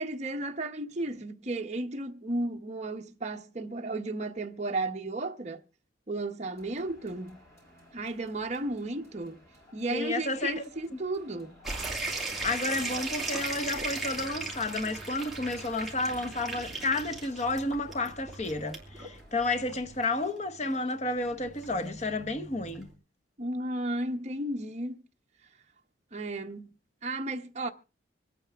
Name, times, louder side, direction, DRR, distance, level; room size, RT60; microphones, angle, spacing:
voice 1, 0.0-5.6 6.1-7.4 7.9-9.4 9.7-11.6 23.4-25.0 26.1-26.7 27.0-27.7, right 2 dB, 35° right, 0.9 m, -34 dB
sound 1, 6.5-19.5, equal, 15° left, 5.9 m, -58 dB
voice 2, 9.9-11.0 12.4-22.9, left 2 dB, 35° left, 0.9 m, -31 dB
sound 2, 11.6-22.9, right 3 dB, ahead, 2.9 m, -38 dB
25.5 x 9.1 x 3.4 m
head